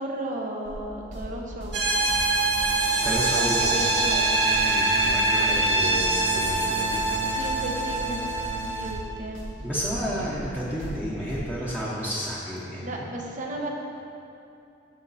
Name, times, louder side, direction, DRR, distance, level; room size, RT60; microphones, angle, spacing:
voice 1, 0.0-2.0 3.1-4.4 7.2-9.5 12.8-13.7, right 1 dB, 40° right, 0 dB, 1.1 m, -35 dB
sound 1, 0.6-11.5, equal, 90° right, 2.1 m, -39 dB
sound 2, 1.7-8.9, right 2 dB, 60° right, 1.8 m, -24 dB
voice 2, 3.0-3.8 4.6-7.5 9.6-13.2, equal, 5° right, -8 dB, 1.1 m, -32 dB
15.5 x 5.3 x 4.2 m, 2.8 s
head